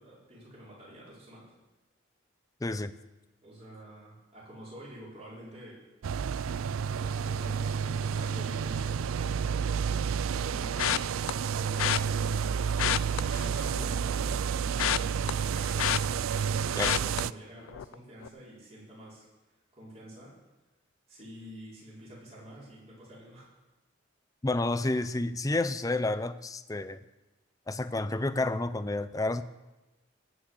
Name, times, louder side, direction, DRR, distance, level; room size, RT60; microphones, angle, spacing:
voice 1, 0.0-1.5 3.4-5.8 7.0-9.9 10.3-16.0 16.5-19.3 19.7-20.3 21.1-23.5, right 1 dB, 30° right, -6 dB, 5.2 m, -48 dB
voice 2, 2.6-2.9 16.8-16.9 24.4-27.0 27.7-29.4, left 2 dB, 15° left, 13 dB, 0.5 m, -30 dB
sound 1, 6.0-17.3, right 7 dB, 90° right, 0.4 m, -30 dB
sound 2, 10.8-11.3 11.8-12.0 12.7-13.9 14.2-16.5 16.8-17.2 17.7-17.9 18.2-18.3, left 12 dB, 85° left, 0.3 m, -29 dB
17.5 x 6.3 x 8.1 m, 1.1 s
head